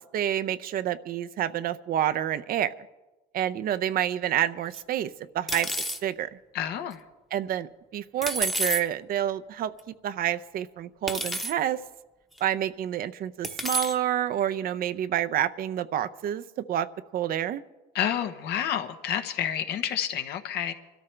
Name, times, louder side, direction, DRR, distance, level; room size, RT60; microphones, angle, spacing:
voice 1, 0.0-2.7 3.3-5.7 6.0-6.3 7.3-9.7 10.0-11.8 12.4-17.6, right 11 dB, 60° right, 12 dB, 0.6 m, -28 dB
sound 1, 4.7-4.8 5.5-6.0 8.2-8.8 9.8-9.9 11.1-11.5 12.4-12.5 13.4-14.0, right 1 dB, ahead, 0.9 m, -29 dB
voice 2, 6.5-7.0 17.9-20.7, left 9 dB, 75° left, 7 dB, 1.2 m, -29 dB
24.5 x 13.5 x 3.3 m, 1.1 s
cardioid pair, 110°, 17 cm